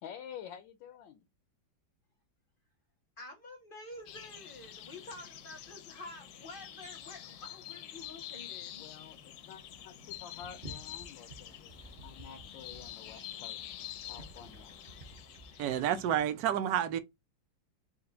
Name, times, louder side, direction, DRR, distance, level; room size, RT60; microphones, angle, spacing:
voice 1, 0.0-1.3 8.8-13.7 14.0-14.7 15.6-15.9, left 8 dB, 90° left, 1.4 m, -50 dB
voice 2, 3.2-8.9, left 2 dB, 55° left, 0.6 m, -49 dB
sound 1, 3.9-16.3, right 2 dB, 45° right, 0.6 m, -56 dB
sound 2, 4.1-16.1, left 11 dB, 70° left, 0.9 m, -47 dB
voice 3, 15.6-17.0, right 10 dB, 65° right, 1.0 m, -29 dB
4.3 x 2.4 x 3.9 m
omnidirectional pair, 2.0 m